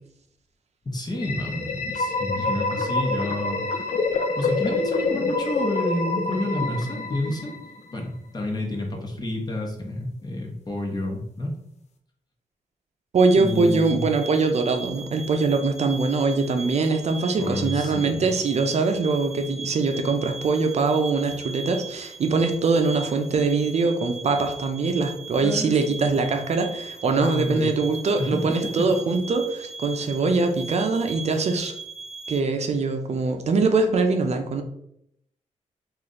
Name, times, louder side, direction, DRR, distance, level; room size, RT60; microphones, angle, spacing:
voice 1, 0.8-3.6 4.4-7.5 7.9-11.5 13.3-14.0 17.4-18.3 25.4-26.0 27.1-27.7 28.2-28.9, left 1 dB, 30° left, 0 dB, 1.0 m, -29 dB
sound 1, 1.2-7.9, left 3 dB, 55° left, 0.6 m, -27 dB
voice 2, 13.1-31.7 32.3-34.6, right 4 dB, 55° right, 5 dB, 0.6 m, -23 dB
sound 2, 13.2-32.4, right 4 dB, 5° right, 0.4 m, -39 dB
3.1 x 2.5 x 3.8 m, 0.74 s
cardioid pair, 90°, 14 cm